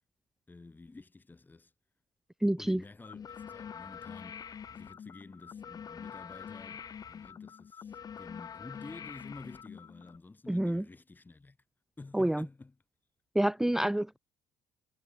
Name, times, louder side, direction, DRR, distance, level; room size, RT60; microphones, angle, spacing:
voice 1, 0.5-1.7 2.6-11.6 12.0-12.7 13.6-13.8, left 3 dB, 20° left, 5.0 m, -51 dB
voice 2, 2.4-2.8 10.5-10.8 12.1-12.5 13.3-14.2, right 1 dB, 5° right, 0.5 m, -28 dB
sound 1, 3.0-10.2, left 7 dB, 45° left, 3.6 m, -45 dB
hypercardioid pair, 70°, 9 cm